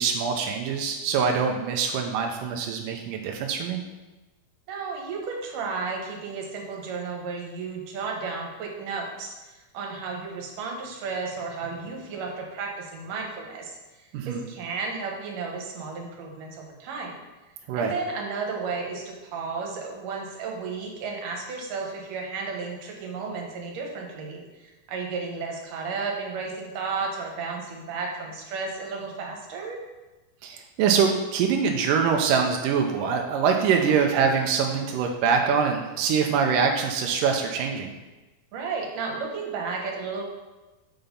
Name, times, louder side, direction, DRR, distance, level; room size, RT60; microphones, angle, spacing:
voice 1, 0.0-3.8 14.1-14.4 17.7-17.9 30.4-37.9, right 6 dB, 85° right, 2 dB, 1.9 m, -24 dB
voice 2, 4.7-17.2 17.7-29.8 33.7-34.1 38.5-40.2, right 4 dB, 65° right, 0 dB, 2.5 m, -33 dB
6.9 x 5.8 x 5.2 m, 1.1 s
omnidirectional pair, 4.6 m